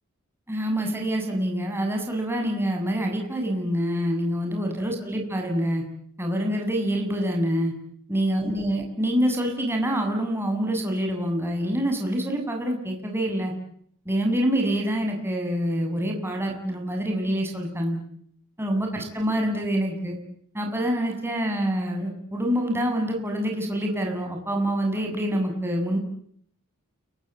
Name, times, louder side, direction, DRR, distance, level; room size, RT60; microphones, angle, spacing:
voice 1, 0.5-5.8 6.2-7.7 8.1-13.5 14.1-18.0 18.6-20.2 20.5-26.0, equal, 10° right, 2 dB, 7.6 m, -26 dB
30.0 x 23.5 x 8.3 m, 0.66 s
head